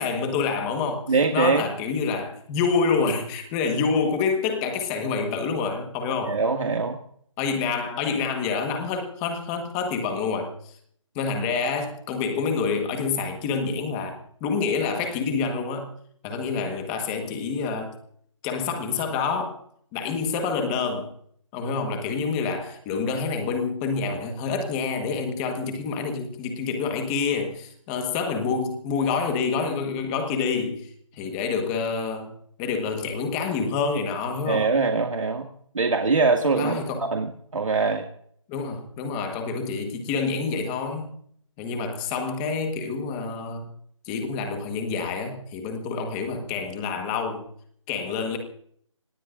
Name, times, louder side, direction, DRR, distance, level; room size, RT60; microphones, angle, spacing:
voice 1, 0.0-6.4 7.4-10.8 11.1-15.9 16.2-18.0 18.4-19.6 19.9-21.1 21.5-32.3 32.6-34.7 36.6-37.0 38.5-41.2 41.6-43.7 44.0-47.5 47.9-48.4, left 5 dB, 10° left, 5 dB, 1.3 m, -27 dB
voice 2, 1.1-1.6 6.3-7.0 34.5-35.5 35.7-36.8 37.1-38.1, right 4 dB, 75° right, 3 dB, 2.0 m, -23 dB
26.0 x 19.0 x 2.5 m, 0.64 s
hypercardioid pair, 175°, 17 cm